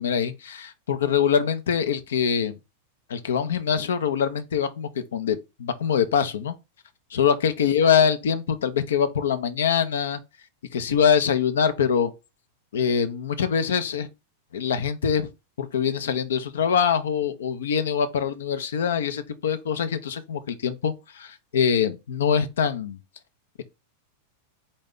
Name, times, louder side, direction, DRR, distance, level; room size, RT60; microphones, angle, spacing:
voice 1, 0.0-2.6 3.1-6.5 7.1-10.2 10.7-12.1 12.7-14.1 14.5-15.3 15.6-23.0, left 7 dB, 65° left, 0.6 m, -24 dB
4.0 x 3.1 x 3.6 m
figure-of-eight pair, 90°, 0 cm